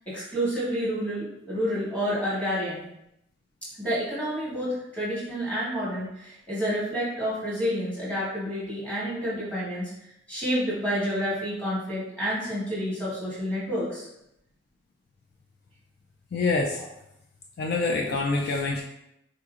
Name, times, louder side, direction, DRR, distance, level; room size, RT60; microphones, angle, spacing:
voice 1, 0.1-2.8 3.8-9.9 10.3-14.1, equal, 5° left, -8 dB, 1.3 m, -29 dB
voice 2, 16.3-16.8 17.6-18.8, left 3 dB, 55° left, 0 dB, 0.3 m, -26 dB
3.9 x 2.9 x 2.4 m, 0.82 s
head